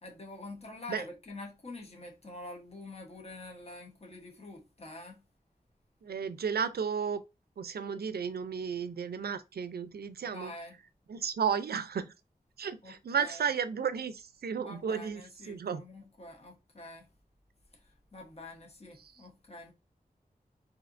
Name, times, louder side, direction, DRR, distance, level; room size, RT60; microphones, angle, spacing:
voice 1, 0.0-5.2 10.2-10.8 12.8-13.5 14.6-17.0 18.1-19.7, left 2 dB, 40° left, 1.0 m, -46 dB
voice 2, 6.1-7.2 7.6-10.5 11.1-12.1 12.6-15.2 15.5-15.8, right 6 dB, 90° right, 0.4 m, -33 dB
4.2 x 2.7 x 2.5 m
wide cardioid pair, 85°, 16 cm